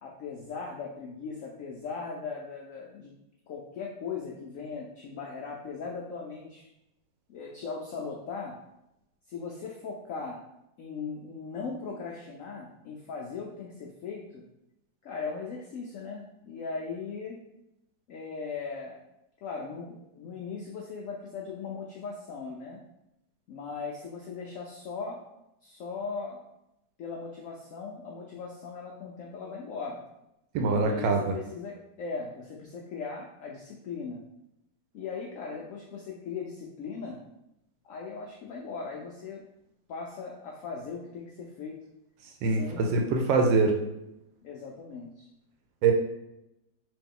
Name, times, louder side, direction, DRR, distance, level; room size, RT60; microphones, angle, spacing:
voice 1, 0.0-3.1 3.5-6.7 7.3-8.6 9.3-10.4 10.8-14.4 15.0-17.4 18.1-19.0 19.4-22.8 23.5-25.2 25.6-26.4 27.0-30.0 30.8-34.2 34.9-37.2 37.8-39.4 39.9-41.8 42.4-43.1 44.4-45.3, left 5 dB, 75° left, -2 dB, 0.7 m, -38 dB
voice 2, 30.5-31.3 42.4-43.8 45.8-45.9, right 4 dB, 85° right, 2 dB, 1.3 m, -24 dB
3.1 x 2.9 x 3.6 m, 0.86 s
omnidirectional pair, 1.9 m